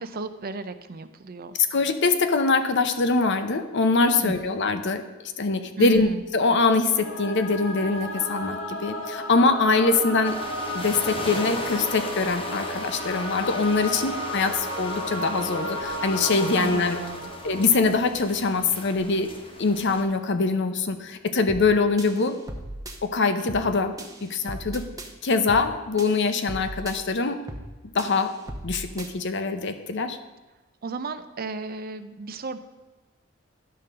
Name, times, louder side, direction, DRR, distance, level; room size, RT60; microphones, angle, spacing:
voice 1, 0.0-1.5 4.2-4.6 5.8-6.2 16.6-17.3 30.8-32.6, right 3 dB, 50° right, 10 dB, 0.5 m, -34 dB
voice 2, 1.7-5.0 5.4-10.4 10.7-17.0 17.4-19.3 19.6-22.4 23.0-23.9 24.2-24.8 25.2-27.4 27.9-28.3 28.6-30.2, left 3 dB, 60° left, 9 dB, 0.7 m, -23 dB
Singing / Musical instrument, 6.9-18.2, left 1 dB, 85° left, 1.9 m, -33 dB
sound 1, 10.2-20.0, left 2 dB, 30° left, 1.1 m, -37 dB
sound 2, 21.5-21.7 22.0-23.0 23.5-23.7 24.0-25.1 25.5-25.7 26.0-27.0 27.5-27.7 28.0-29.1, right 1 dB, 20° right, 0.9 m, -37 dB
11.0 x 3.8 x 6.7 m, 1.2 s
head